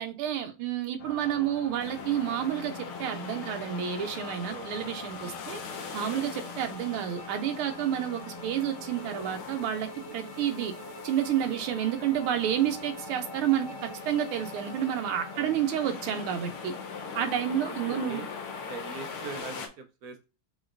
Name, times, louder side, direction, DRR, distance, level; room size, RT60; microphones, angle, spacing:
voice 1, 0.0-5.6 5.9-10.7 11.0-13.7 14.0-16.7 17.1-18.2, right 10 dB, 85° right, 1.5 m, -30 dB
sound 1, 1.0-19.4, left 4 dB, 65° left, 1.2 m, -44 dB
sound 2, 1.8-19.7, left 5 dB, 90° left, 1.8 m, -43 dB
voice 2, 4.5-5.4 11.4-11.6 15.3-15.5 17.4-20.3, right 4 dB, 70° right, 0.9 m, -43 dB
Bowed string instrument, 6.5-15.6, right 3 dB, 45° left, 1.8 m, -49 dB
5.0 x 3.8 x 2.4 m
omnidirectional pair, 2.3 m